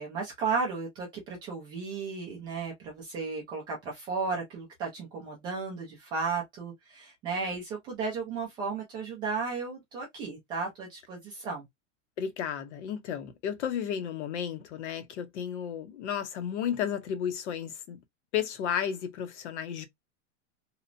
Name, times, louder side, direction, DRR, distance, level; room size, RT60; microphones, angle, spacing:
voice 1, 0.0-11.6, right 4 dB, 15° right, 0.3 m, -34 dB
voice 2, 12.2-18.0 18.3-19.9, left 8 dB, 65° left, 0.8 m, -33 dB
2.9 x 2.1 x 2.4 m
supercardioid pair, 160°, 37 cm